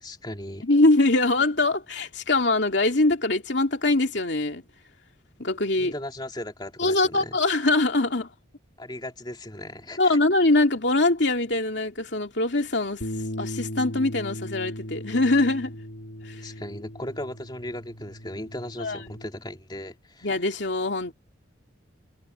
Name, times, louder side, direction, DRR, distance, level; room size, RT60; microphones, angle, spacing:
voice 1, 0.0-0.7 5.8-7.4 8.8-10.2 16.4-20.3, left 1 dB, 20° left, 3.2 m, -37 dB
voice 2, 0.6-4.6 5.4-5.9 6.8-8.3 10.0-13.0 13.4-15.7 16.2-16.4 18.8-19.0 20.2-21.1, left 2 dB, 60° left, 2.9 m, -23 dB
Bass guitar, 13.0-19.3, left 1 dB, 80° left, 4.2 m, -37 dB
head